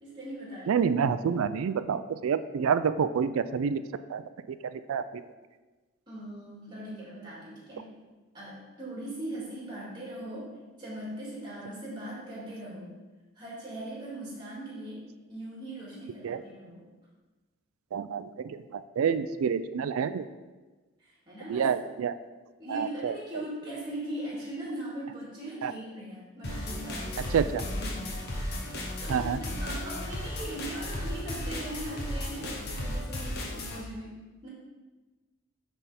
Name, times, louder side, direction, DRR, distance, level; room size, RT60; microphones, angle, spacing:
voice 1, 0.0-0.8 6.1-7.9 8.3-10.5 10.8-12.9 13.4-16.9 21.0-21.7 22.6-28.3 28.6-28.7 29.0-34.5, right 1 dB, 20° right, -6 dB, 2.2 m, -40 dB
voice 2, 0.7-3.8 4.1-4.2 4.6-5.2 16.2-16.4 17.9-20.3 21.5-22.1 22.7-23.1 25.6-25.7 27.3-27.6 29.1-29.4, right 6 dB, 80° right, 12 dB, 0.3 m, -28 dB
sound 1, 26.4-33.8, left 1 dB, 50° left, 0.9 m, -35 dB
9.8 x 3.5 x 4.1 m, 1.2 s
head